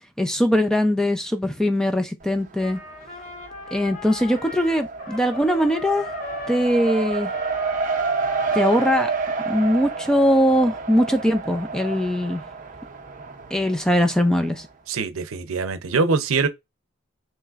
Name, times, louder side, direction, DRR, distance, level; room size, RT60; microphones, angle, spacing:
voice 1, 0.2-2.8 3.7-6.1 6.5-7.3 8.5-9.1 9.5-12.4 13.5-14.7, equal, 5° left, 0.4 m, -21 dB
Race car auto racing, 2.2-3.0 3.3-14.6, right 4 dB, 40° right, 0.6 m, -30 dB
Trumpet, 2.6-9.9, left 2 dB, 35° left, 1.2 m, -39 dB
voice 2, 14.9-16.5, right 4 dB, 90° right, 0.6 m, -23 dB
5.7 x 3.0 x 2.4 m
head